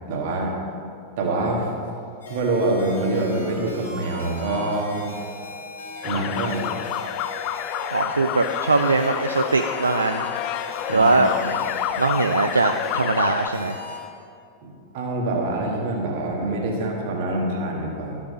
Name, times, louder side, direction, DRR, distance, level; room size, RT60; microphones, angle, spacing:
voice 1, 0.1-0.6 1.2-1.7 2.3-5.1 6.0-6.7 10.9-11.1 11.4-11.6 14.6-18.2, right 2 dB, 50° right, -1 dB, 1.8 m, -25 dB
sound 1, 2.2-14.0, left 3 dB, 70° left, 2.5 m, -38 dB
sound 2, 6.0-13.5, left 11 dB, 40° left, 0.3 m, -29 dB
voice 2, 7.9-10.3 10.9-11.3 12.0-13.8, right 3 dB, 80° right, 6 dB, 0.3 m, -21 dB
12.5 x 6.0 x 5.1 m, 2.5 s
figure-of-eight pair, 90°, 0 cm